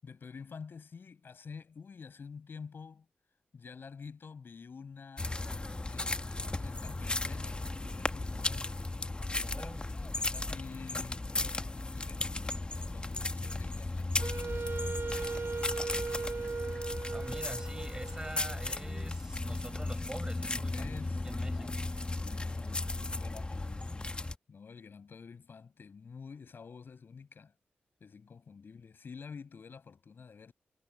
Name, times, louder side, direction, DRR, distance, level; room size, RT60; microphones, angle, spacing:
voice 1, 0.0-3.1 3.5-5.3 5.8-8.9 9.3-16.3 20.7-21.2 21.5-21.7 22.2-24.2 24.5-27.5 28.0-30.5, left 5 dB, 65° left, 7.9 m, -49 dB
sound 1, 5.2-24.4, left 2 dB, 25° left, 1.2 m, -36 dB
voice 2, 9.4-9.9 17.1-21.0 21.2-21.8, right 1 dB, 15° right, 6.7 m, -45 dB
Wind instrument woodwind instrument, 14.2-19.1, right 4 dB, 50° right, 0.9 m, -38 dB
cardioid pair, 65°, 4 cm